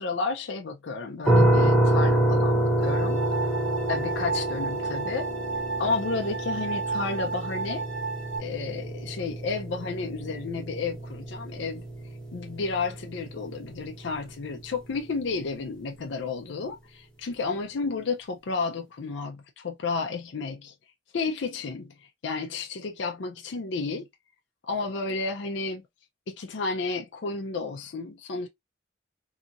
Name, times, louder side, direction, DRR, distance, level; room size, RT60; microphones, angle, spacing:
voice 1, 0.0-3.5 3.9-5.3 5.8-7.8 8.4-11.8 12.3-20.7 21.1-24.1 24.7-25.8 26.3-28.5, left 4 dB, 65° left, 0.5 m, -32 dB
sound 1, 1.2-14.1, right 1 dB, 5° left, 1.0 m, -27 dB
sound 2, 2.8-8.4, right 4 dB, 80° right, 1.1 m, -33 dB
2.8 x 2.4 x 2.6 m
head